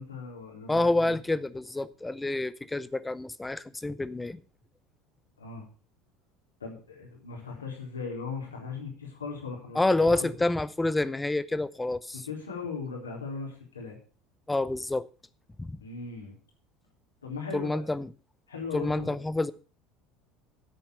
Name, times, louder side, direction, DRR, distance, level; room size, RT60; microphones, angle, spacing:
voice 1, 0.0-1.2 5.4-5.7 6.6-10.3 12.2-14.0 15.8-16.4 17.2-17.8 18.5-19.2, left 5 dB, 75° left, 3.7 m, -38 dB
voice 2, 0.7-4.4 9.7-12.2 14.5-15.1 15.6-15.8 17.5-18.1 18.7-19.5, left 2 dB, 10° left, 0.7 m, -28 dB
10.0 x 8.5 x 6.7 m
figure-of-eight pair, 70°, 0 cm